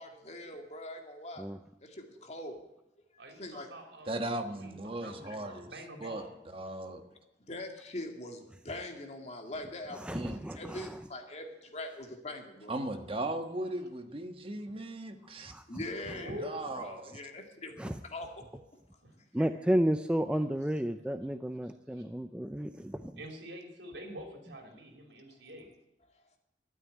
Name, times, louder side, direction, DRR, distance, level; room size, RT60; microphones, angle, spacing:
voice 1, 0.0-1.5 1.8-2.6 3.4-3.7 5.3-5.4 7.5-10.1 10.5-12.7 15.7-18.6, left 1 dB, 40° left, 3 dB, 2.2 m, -42 dB
voice 2, 3.2-4.2 4.5-4.7 5.0-6.3 16.1-16.7 19.4-19.5 21.9-22.0 23.2-25.7, equal, 85° right, 3 dB, 3.5 m, -45 dB
voice 3, 4.1-7.0 10.1-10.5 12.7-15.5 16.4-17.2, right 1 dB, 30° right, 6 dB, 1.3 m, -38 dB
voice 4, 9.9-11.0 15.5-15.8 17.8-18.0 19.3-23.2, equal, 5° right, 9 dB, 0.4 m, -32 dB
13.0 x 9.4 x 9.3 m, 0.89 s
head